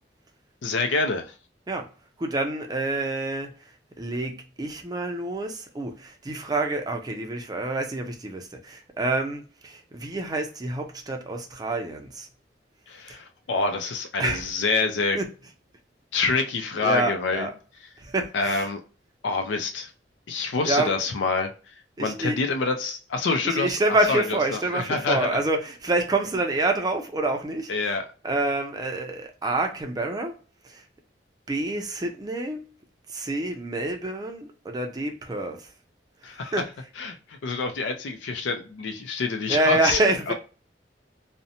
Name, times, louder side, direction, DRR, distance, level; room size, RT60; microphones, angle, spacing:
voice 1, 0.6-1.3 12.9-15.2 16.1-17.5 18.3-18.8 19.2-19.9 20.3-23.8 24.1-25.4 27.7-28.1 36.2-36.5 37.0-40.0 40.3-40.4, left 3 dB, 85° left, 0.4 m, -27 dB
voice 2, 2.2-3.7 4.0-12.3 13.1-13.2 14.2-14.5 15.1-15.3 16.8-17.5 18.0-18.7 20.6-21.0 22.0-22.4 23.4-27.7 28.2-30.4 30.6-30.8 31.5-32.7 33.1-35.7 36.5-36.7 39.5-40.3, right 2 dB, 20° right, 0.4 m, -27 dB
2.6 x 2.1 x 2.6 m
head